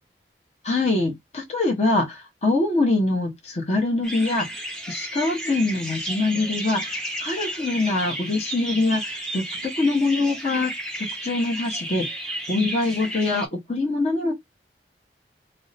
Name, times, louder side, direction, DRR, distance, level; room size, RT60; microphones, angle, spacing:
voice 1, 0.6-4.5 4.9-9.4 9.8-10.7 11.0-12.2 12.5-14.3, left 2 dB, 40° left, 0.9 m, -24 dB
sound 1, 4.0-13.5, right 1 dB, 5° left, 0.6 m, -33 dB
2.7 x 2.1 x 3.9 m
head